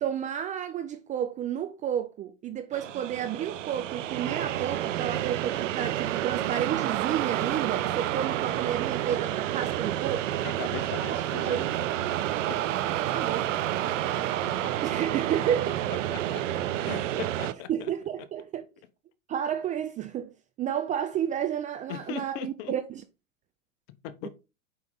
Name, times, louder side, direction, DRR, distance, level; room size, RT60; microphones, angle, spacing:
voice 1, 0.0-10.4 11.1-11.2 11.4-11.7 13.0-13.6 14.8-15.8 17.7-18.6 19.3-23.0, right 9 dB, 20° right, 0.4 m, -31 dB
sound 1, 2.7-17.5, right 12 dB, 70° right, 0.7 m, -29 dB
voice 2, 10.4-11.7 12.5-12.6 14.6-14.7 16.1-16.4 16.8-17.9 21.9-22.7 24.0-24.3, left 10 dB, 45° left, 1.0 m, -39 dB
5.7 x 5.1 x 3.9 m
hypercardioid pair, 105°, 39 cm